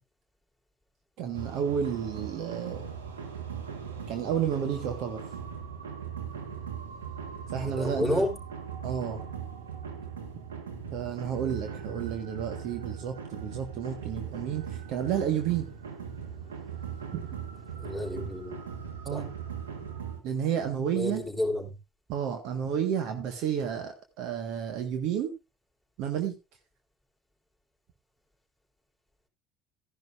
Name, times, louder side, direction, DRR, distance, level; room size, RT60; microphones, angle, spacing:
voice 1, 1.2-2.9 4.1-5.2 7.5-8.2 8.8-9.3 10.9-15.7 17.1-17.2 19.0-19.3 20.2-21.2 22.1-25.3 26.0-26.3, right 8 dB, 65° right, 6 dB, 1.5 m, -31 dB
sound 1, 1.3-20.2, right 7 dB, 90° right, 1.5 m, -39 dB
voice 2, 7.6-8.3 17.8-18.6 19.1-19.2 20.9-21.7, left 1 dB, 5° right, 1 dB, 4.0 m, -30 dB
13.5 x 11.0 x 2.5 m, 0.26 s
hypercardioid pair, 70°, 0 cm